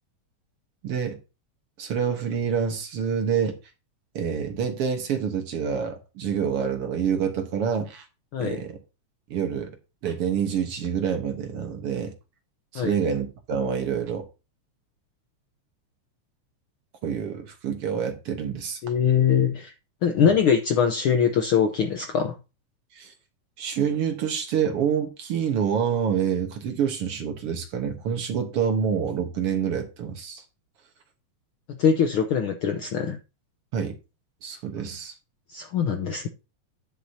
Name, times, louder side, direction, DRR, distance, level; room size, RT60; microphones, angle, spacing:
voice 1, 0.8-1.2 1.8-3.6 4.2-8.1 8.4-8.8 9.3-9.7 10.0-12.1 12.7-14.2 17.0-18.8 20.2-20.3 22.9-23.1 23.6-30.4 33.7-33.9 34.4-35.1, right 7 dB, 60° right, 1.9 m, -27 dB
voice 2, 8.3-8.6 12.7-12.9 18.8-19.7 20.0-22.3 31.7-33.2 35.5-36.3, left 7 dB, 70° left, 1.3 m, -22 dB
11.0 x 9.8 x 2.8 m
omnidirectional pair, 3.3 m